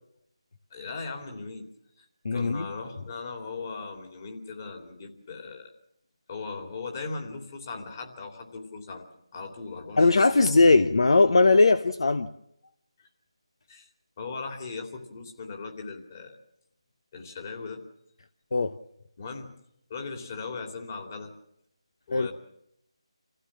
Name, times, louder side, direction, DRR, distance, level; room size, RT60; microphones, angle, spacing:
voice 1, 0.7-1.7 2.0-2.1 2.3-5.7 6.3-9.1 9.3-10.5 13.0-13.1 13.7-13.9 14.2-16.4 17.1-17.8 19.2-19.5 19.9-21.3 22.1-22.3, left 4 dB, 30° left, 3 dB, 2.9 m, -38 dB
voice 2, 2.2-2.7 10.0-12.3 18.5-18.7 22.1-22.3, left 3 dB, 60° left, 11 dB, 0.9 m, -19 dB
27.0 x 15.5 x 7.5 m, 0.78 s
figure-of-eight pair, 165°, 3 cm